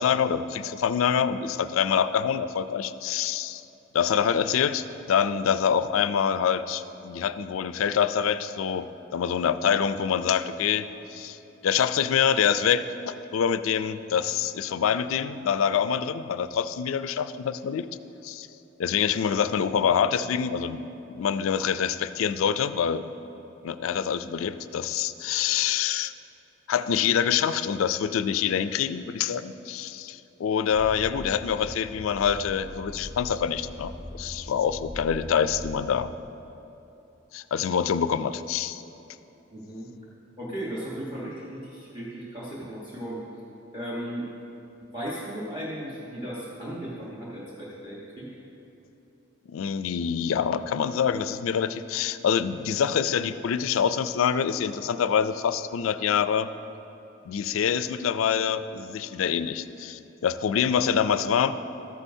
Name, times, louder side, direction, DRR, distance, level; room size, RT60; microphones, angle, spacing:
voice 1, 0.0-3.6 3.9-8.9 9.1-17.9 18.2-18.5 18.8-20.8 21.1-23.0 23.6-26.1 26.7-33.9 34.2-36.1 37.3-38.8 49.5-56.5 57.3-61.6, left 7 dB, 85° left, 13 dB, 0.3 m, -26 dB
sound 1, 30.7-36.1, equal, 5° right, 0.4 m, -41 dB
voice 2, 39.5-39.9 40.4-43.2 43.7-44.3 44.9-48.3, right 1 dB, 25° right, -7 dB, 1.1 m, -36 dB
13.5 x 9.8 x 2.7 m, 2.9 s
head